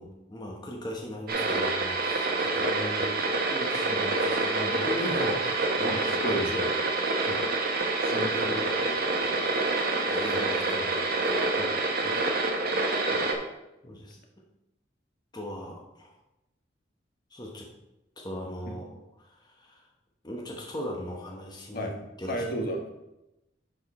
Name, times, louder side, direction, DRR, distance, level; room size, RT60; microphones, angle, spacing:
voice 1, 0.0-6.7 7.2-7.5 7.8-8.7 10.1-11.5 13.8-14.2 15.3-16.1 17.3-17.7 18.2-19.8 20.2-22.4, left 1 dB, 25° left, -1 dB, 1.0 m, -39 dB
sound 1, 1.3-13.3, right 3 dB, 55° right, 1.2 m, -27 dB
voice 2, 5.8-6.6 7.3-7.4 8.0-9.4 11.6-12.3 13.1-13.3 18.7-18.8 21.7-21.9 22.3-22.9, equal, 55° left, 2 dB, 1.4 m, -35 dB
10.5 x 4.7 x 4.2 m, 0.93 s
head